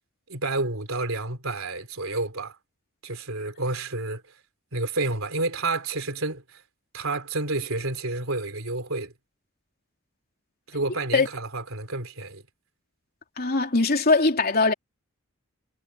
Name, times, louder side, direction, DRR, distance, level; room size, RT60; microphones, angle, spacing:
voice 1, 0.3-2.6 3.0-4.2 4.7-6.6 6.9-9.1 10.7-12.4, right 2 dB, 75° right, 3.8 m, -30 dB
voice 2, 13.4-14.7, left 3 dB, 45° left, 3.3 m, -21 dB
head